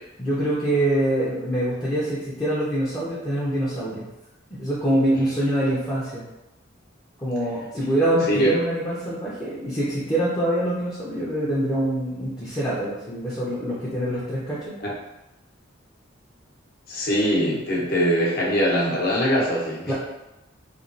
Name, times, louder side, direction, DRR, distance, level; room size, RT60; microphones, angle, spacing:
voice 1, 0.2-4.1 4.6-6.2 7.2-14.8 19.9-20.0, right 1 dB, 15° left, -9 dB, 0.6 m, -25 dB
voice 2, 16.9-19.9, equal, 55° left, -4 dB, 0.8 m, -22 dB
3.0 x 2.3 x 2.5 m, 0.96 s
head